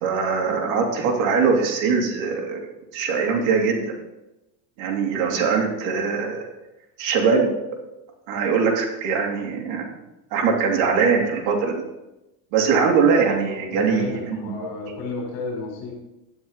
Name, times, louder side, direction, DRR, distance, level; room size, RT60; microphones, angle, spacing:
voice 1, 0.0-2.6 2.9-3.9 4.8-6.5 7.0-7.6 8.3-10.0 10.3-11.9 12.5-14.5, right 5 dB, 65° right, 1 dB, 2.9 m, -22 dB
voice 2, 13.7-15.9, left 3 dB, 60° left, 0 dB, 4.1 m, -32 dB
12.0 x 9.8 x 4.0 m, 0.96 s
supercardioid pair, 130°, 49 cm